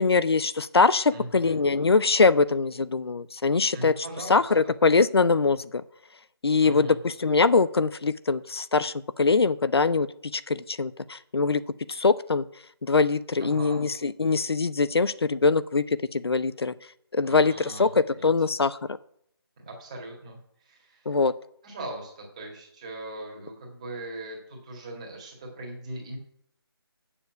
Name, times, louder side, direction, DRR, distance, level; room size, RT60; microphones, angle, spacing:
voice 1, 0.0-4.0 4.3-5.8 6.4-10.1 10.3-11.6 11.9-12.4 12.8-15.8 16.1-16.7 17.1-19.0 21.1-21.3, left 4 dB, 75° left, 15 dB, 0.6 m, -23 dB
voice 2, 1.1-1.6 3.7-4.7 6.6-7.0 13.4-13.9 17.2-18.3 19.6-21.2 21.6-26.2, right 1 dB, 15° right, -1 dB, 1.9 m, -40 dB
7.1 x 7.1 x 7.9 m, 0.70 s
figure-of-eight pair, 175°, 13 cm